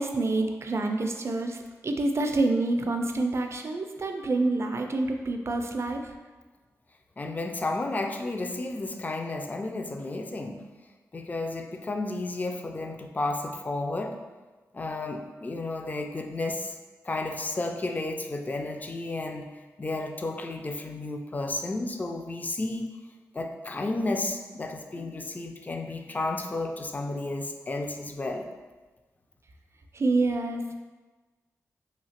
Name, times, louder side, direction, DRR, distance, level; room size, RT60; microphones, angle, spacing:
voice 1, 0.0-6.1 29.9-30.8, right 2 dB, 45° right, 4 dB, 0.4 m, -27 dB
voice 2, 7.2-10.7 11.1-14.2 14.7-16.8 17.0-22.9 23.3-28.5, left 2 dB, 25° left, 4 dB, 0.3 m, -32 dB
2.9 x 2.7 x 2.8 m, 1.3 s
cardioid pair, 45°, 6 cm